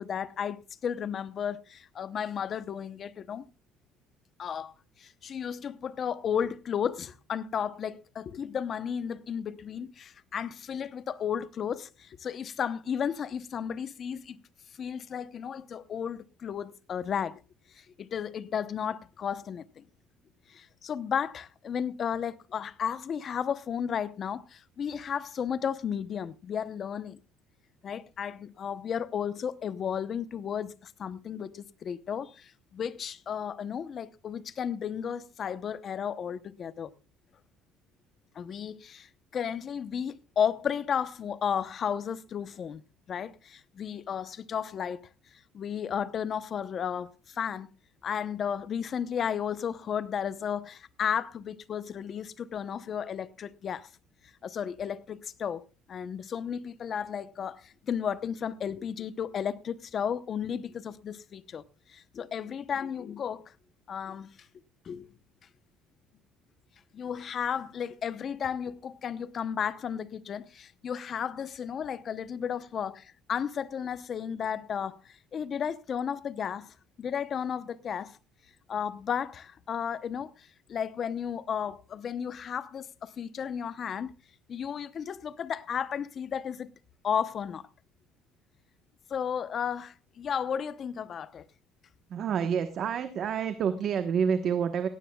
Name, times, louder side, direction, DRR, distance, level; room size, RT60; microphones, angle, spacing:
voice 1, 0.0-3.5 4.4-4.7 5.0-14.4 14.8-17.4 17.7-19.8 20.5-27.2 27.8-36.9 38.3-42.8 43.1-45.1 45.5-47.7 48.0-53.9 54.4-63.5 63.9-64.3 64.8-65.1 66.9-78.2 78.7-84.1 84.5-86.7 87.0-87.7 89.1-91.5, left 8 dB, 40° left, 0.8 m, -33 dB
voice 2, 92.1-94.9, right 7 dB, 45° right, 1.1 m, -28 dB
17.5 x 16.5 x 2.3 m
cardioid pair, 135°, 0 cm